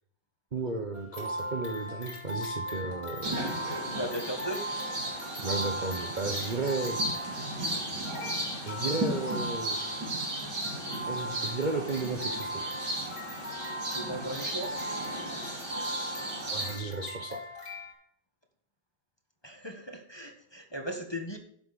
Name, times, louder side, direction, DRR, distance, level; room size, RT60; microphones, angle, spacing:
voice 1, 0.5-3.4 5.4-7.0 8.6-9.9 11.1-12.6 16.4-17.4, right 3 dB, 30° right, 3 dB, 1.0 m, -34 dB
sound 1, 0.9-17.9, equal, 75° left, 4.6 m, -39 dB
sound 2, 3.2-16.7, right 1 dB, 80° right, 4.6 m, -35 dB
voice 2, 3.8-4.7 13.8-14.7 19.4-21.4, right 1 dB, 15° left, 3 dB, 1.4 m, -37 dB
12.0 x 7.8 x 4.2 m, 0.66 s
omnidirectional pair, 1.9 m